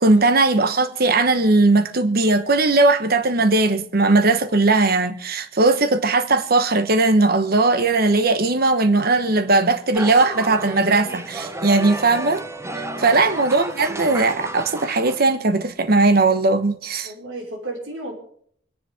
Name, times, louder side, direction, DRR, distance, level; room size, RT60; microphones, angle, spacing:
voice 1, 0.0-12.4 12.7-17.1, right 3 dB, 55° right, 1.2 m, -18 dB
sound 1, 9.9-15.3, right 1 dB, 15° right, 1.0 m, -32 dB
voice 2, 12.9-13.2 17.0-18.1, right 2 dB, 90° right, 5.4 m, -34 dB
25.5 x 10.5 x 3.6 m
head